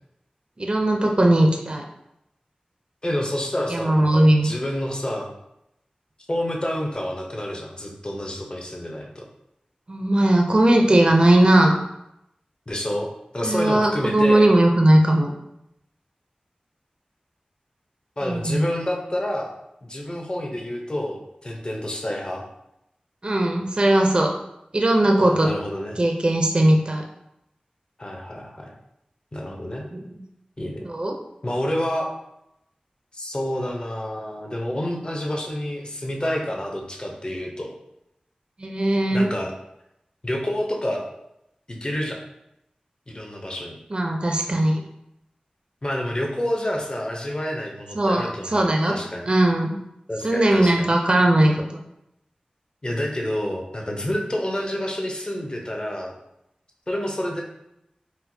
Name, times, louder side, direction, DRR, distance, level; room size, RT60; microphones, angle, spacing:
voice 1, 0.6-1.8 3.7-4.6 9.9-11.7 13.4-15.3 18.2-18.6 23.2-24.3 24.7-25.5 26.0-27.1 29.9-30.2 30.8-31.2 38.6-39.3 43.9-44.8 47.9-49.0 49.3-49.7 50.2-51.5, right 1 dB, 40° right, 2 dB, 0.4 m, -18 dB
voice 2, 3.0-5.3 6.3-9.2 12.7-13.1 13.3-14.5 18.2-19.5 19.9-22.4 25.2-26.0 28.0-28.7 29.3-29.8 30.6-30.8 31.4-32.1 33.1-37.7 39.1-39.5 40.2-41.1 41.7-42.2 43.1-43.8 45.8-49.3 50.1-50.9 52.8-56.1 56.9-57.4, left 1 dB, 35° left, 0 dB, 0.6 m, -28 dB
4.3 x 2.0 x 2.7 m, 0.82 s
wide cardioid pair, 60°, 3 cm